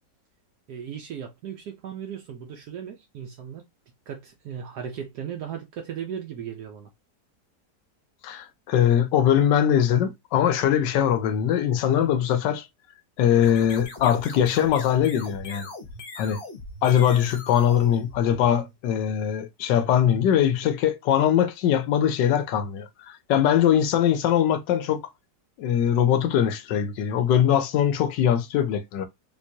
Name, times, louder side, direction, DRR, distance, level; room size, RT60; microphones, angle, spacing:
voice 1, 0.7-3.7 4.1-6.9, right 8 dB, 70° right, 1.1 m, -36 dB
voice 2, 8.2-12.6 13.2-15.7 16.2-16.4 16.8-25.0 25.6-29.1, left 9 dB, 80° left, 1.2 m, -22 dB
sound 1, 13.3-18.8, left 3 dB, 45° left, 0.9 m, -41 dB
3.6 x 3.0 x 2.7 m
omnidirectional pair, 1.9 m